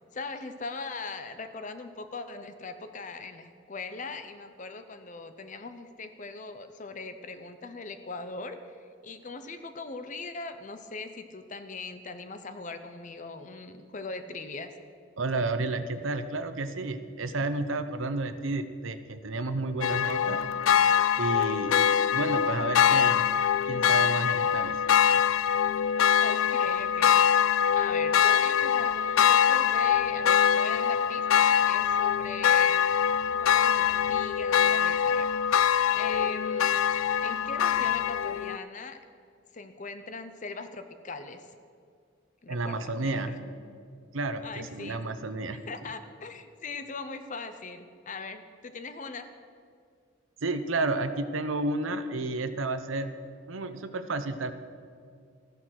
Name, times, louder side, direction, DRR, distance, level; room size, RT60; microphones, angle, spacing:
voice 1, 0.1-14.7 26.2-27.2 27.7-32.9 33.3-36.7 37.2-39.0 39.5-41.5 42.4-43.4 44.4-45.0 45.5-49.3, left 3 dB, 40° left, 9 dB, 0.7 m, -40 dB
voice 2, 15.2-20.4 21.2-21.8 22.1-23.3 23.7-24.8 42.5-43.3 44.1-45.6 50.4-53.1 53.5-54.5, right 2 dB, 80° right, 9 dB, 0.8 m, -31 dB
sound 1, 19.8-38.6, left 8 dB, 85° left, 0.3 m, -24 dB
14.0 x 10.0 x 6.4 m, 2.2 s
head